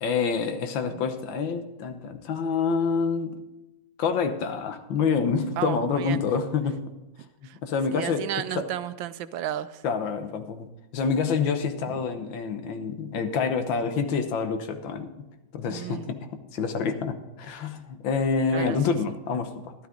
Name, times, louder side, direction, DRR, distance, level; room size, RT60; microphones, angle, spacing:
voice 1, 0.0-3.4 4.0-6.8 7.6-8.3 8.6-8.7 9.8-10.7 10.9-15.1 15.5-16.2 16.5-19.7, left 5 dB, 80° left, 8 dB, 1.7 m, -27 dB
voice 2, 5.6-6.2 7.4-7.6 7.9-9.8 11.9-12.0 15.7-16.1 18.5-18.8, right 11 dB, 85° right, 13 dB, 1.3 m, -33 dB
12.5 x 12.0 x 3.8 m, 1.0 s
omnidirectional pair, 2.1 m